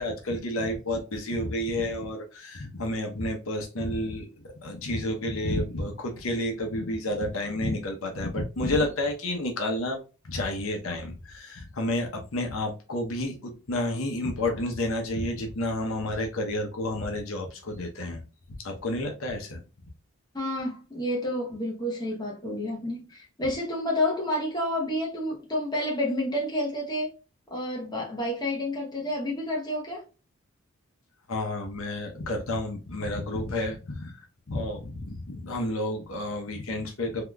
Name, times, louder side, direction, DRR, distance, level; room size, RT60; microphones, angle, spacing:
voice 1, 0.0-10.0 10.2-18.2 18.6-19.6 31.3-34.2 34.5-37.2, left 1 dB, 70° left, 0.8 m, -30 dB
voice 2, 20.3-27.1 27.5-30.0, left 1 dB, 20° left, 0.9 m, -29 dB
3.6 x 2.9 x 2.2 m
head